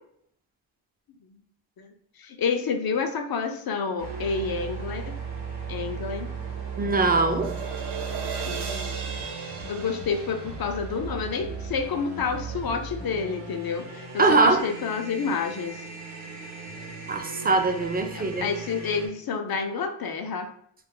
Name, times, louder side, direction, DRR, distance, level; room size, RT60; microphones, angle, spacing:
voice 1, 2.2-5.1 5.7-6.3 8.4-9.0 9.6-15.8 18.1-20.5, left 5 dB, 50° left, 6 dB, 0.5 m, -29 dB
sound 1, 4.0-19.1, right 5 dB, 90° right, 0.8 m, -37 dB
sound 2, 5.9-12.2, right 5 dB, 60° right, 0.7 m, -38 dB
voice 2, 6.8-7.5 14.2-14.6 17.1-18.5, right 3 dB, 20° right, 5 dB, 0.4 m, -22 dB
2.4 x 2.0 x 3.7 m, 0.66 s
cardioid pair, 45°, 46 cm